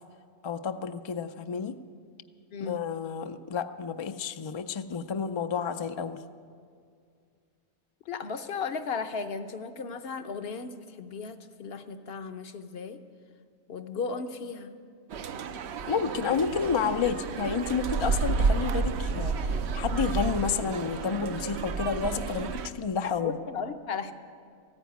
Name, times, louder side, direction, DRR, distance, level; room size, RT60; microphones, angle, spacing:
voice 1, 0.4-1.8 2.6-6.2 15.9-23.4, left 6 dB, 45° left, 9 dB, 0.3 m, -30 dB
voice 2, 8.1-13.0 13.7-14.7 23.0-24.1, left 5 dB, 60° left, 8 dB, 1.0 m, -35 dB
sound 1, 15.1-22.7, right 4 dB, 70° right, 0.9 m, -30 dB
14.5 x 9.7 x 9.3 m, 2.2 s
omnidirectional pair, 1.2 m